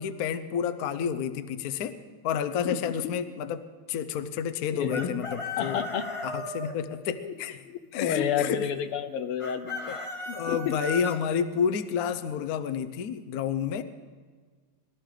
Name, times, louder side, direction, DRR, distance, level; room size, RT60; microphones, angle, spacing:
voice 1, 0.0-2.0 2.2-3.6 3.9-5.8 6.2-7.6 7.9-8.7 9.9-10.0 10.3-13.8, left 7 dB, 65° left, 9 dB, 0.9 m, -30 dB
voice 2, 2.6-3.1 4.7-5.2 5.6-6.1 7.2-7.3 7.6-9.9 10.3-10.8, left 8 dB, 85° left, 10 dB, 1.8 m, -30 dB
Chicken rooster, 4.9-6.7 9.4-11.2, left 2 dB, 25° left, 0.6 m, -35 dB
22.0 x 13.0 x 3.8 m, 1.5 s
omnidirectional pair, 2.4 m